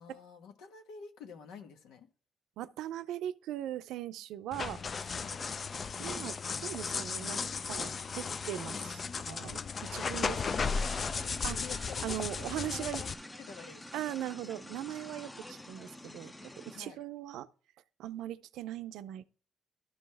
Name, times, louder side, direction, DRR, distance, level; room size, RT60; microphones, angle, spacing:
voice 1, 0.0-2.1 5.2-5.4 10.1-12.2 12.7-13.1 13.4-13.9 16.7-17.0, left 5 dB, 85° left, 1.2 m, -48 dB
voice 2, 2.6-5.1 6.0-7.4 7.7-9.6 9.9-10.4 11.4-11.6 12.0-13.0 13.9-17.5 18.0-19.3, right 12 dB, 90° right, 0.5 m, -40 dB
sound 1, 4.5-13.1, left 5 dB, 40° left, 0.4 m, -35 dB
sound 2, 10.4-16.8, left 1 dB, 15° left, 0.7 m, -48 dB
12.0 x 5.4 x 3.4 m
cardioid pair, 90°, 0 cm